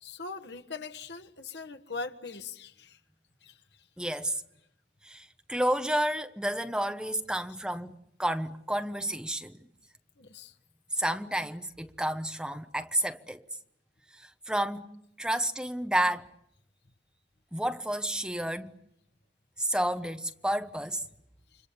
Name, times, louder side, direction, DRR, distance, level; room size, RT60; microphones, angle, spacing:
voice 1, 0.0-3.0 3.4-3.6 7.3-7.4 10.2-10.5, left 4 dB, 80° left, 1.6 m, -41 dB
voice 2, 4.0-4.4 5.0-9.6 10.9-13.4 14.2-14.9 15.2-16.3 17.5-18.7 19.6-21.0, right 1 dB, 5° right, 1.0 m, -30 dB
30.0 x 25.0 x 7.2 m
head